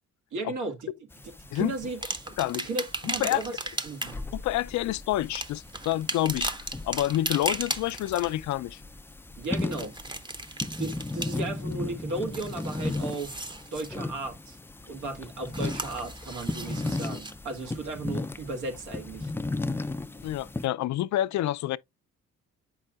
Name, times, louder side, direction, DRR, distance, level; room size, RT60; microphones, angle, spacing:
voice 1, 0.3-0.9 1.5-2.0 2.3-2.4 2.6-4.2 9.4-9.9 10.8-13.3 13.7-14.6 14.9-19.3, right 2 dB, 80° right, 1.6 m, -35 dB
sound 1, 1.1-20.7, left 2 dB, 10° left, 0.3 m, -36 dB
sound 2, 2.0-4.3 5.2-8.4 9.4-11.7 12.1-13.9 15.5-17.3 18.1-18.2, right 2 dB, 15° right, 0.7 m, -36 dB
voice 2, 2.4-2.7 3.0-3.4 4.3-6.5 6.8-8.8 20.2-21.8, left 14 dB, 70° left, 0.4 m, -28 dB
7.5 x 5.6 x 2.3 m
cardioid pair, 90°, 30 cm